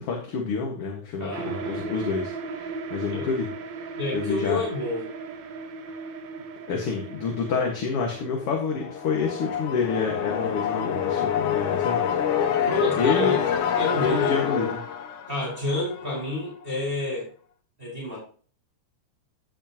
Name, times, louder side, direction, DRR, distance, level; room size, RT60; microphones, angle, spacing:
voice 1, 0.0-3.5 4.1-4.6 6.7-12.1 13.0-13.4 14.0-14.8, left 5 dB, 50° left, 0 dB, 2.4 m, -28 dB
voice 2, 1.2-2.0 3.1-3.2 3.9-5.1 12.7-13.4 13.7-14.5 15.3-17.3 17.8-18.2, left 2 dB, 15° right, -4 dB, 5.0 m, -29 dB
sound 1, 1.3-9.6, right 4 dB, 70° right, 1.1 m, -37 dB
sound 2, 8.6-16.3, left 8 dB, 80° left, 2.9 m, -27 dB
16.0 x 7.4 x 3.0 m, 0.42 s
omnidirectional pair, 3.6 m